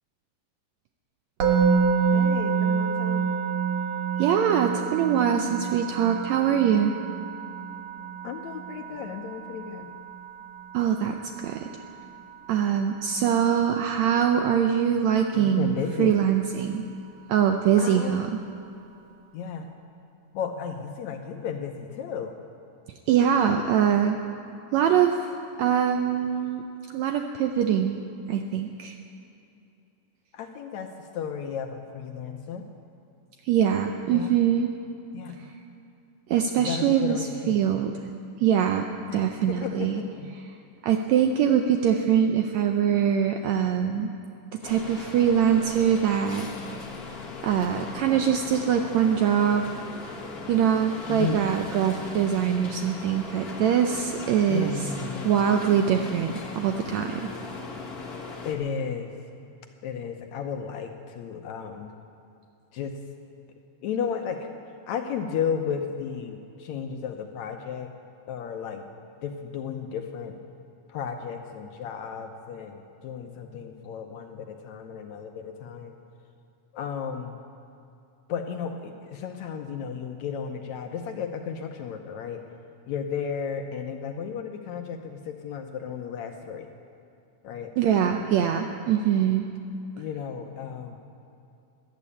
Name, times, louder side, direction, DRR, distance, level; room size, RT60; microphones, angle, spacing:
Musical instrument, 1.4-12.5, right 6 dB, 60° right, 2.3 m, -28 dB
voice 1, 2.1-3.4 8.2-9.9 15.3-16.2 17.8-18.2 19.3-19.7 20.3-22.4 30.3-32.6 34.1-34.4 35.1-35.5 36.6-37.6 39.1-40.4 51.1-51.5 54.5-55.4 58.4-59.1 59.8-61.9 62.7-63.0 63.8-64.5 64.9-67.9 68.3-68.8 69.2-70.4 70.9-75.9 76.7-77.4 78.3-82.4 82.9-86.7 87.4-87.7 90.0-91.0, left 7 dB, 75° left, 5 dB, 1.8 m, -34 dB
voice 2, 4.2-6.9 10.7-11.7 12.5-16.8 17.3-18.4 23.1-24.2 24.7-25.3 25.6-26.6 26.9-28.0 28.3-28.9 33.5-34.7 36.3-37.2 37.5-37.9 38.4-40.0 40.8-44.1 44.5-46.5 47.4-49.6 50.5-54.8 55.2-57.3 87.8-89.4, right 8 dB, 80° right, 5 dB, 1.6 m, -23 dB
sound 1, 44.6-58.5, left 3 dB, 55° left, 1.0 m, -39 dB
13.5 x 11.0 x 8.5 m, 2.8 s
omnidirectional pair, 3.8 m